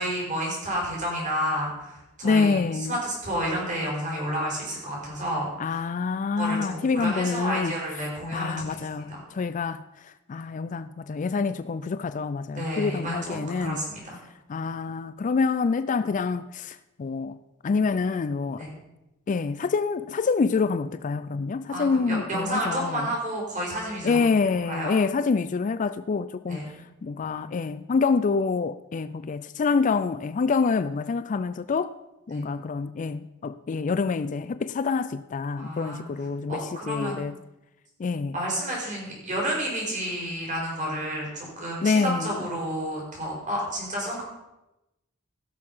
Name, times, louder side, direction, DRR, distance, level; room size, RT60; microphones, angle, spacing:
voice 1, 0.0-5.8 6.4-8.6 8.9-9.2 12.5-14.0 18.6-18.7 21.7-24.3 24.7-25.0 26.5-26.7 32.3-32.4 35.5-36.0 36.5-37.2 38.3-44.2, equal, 35° right, 4.9 m, -30 dB
voice 2, 2.2-2.9 5.6-7.7 8.3-13.8 14.5-17.4 17.6-18.6 19.3-23.1 24.0-26.6 27.0-31.9 32.3-37.3 38.0-38.4 41.8-42.4, left 4 dB, 35° left, 0.3 m, -26 dB
16.5 x 6.7 x 5.5 m
head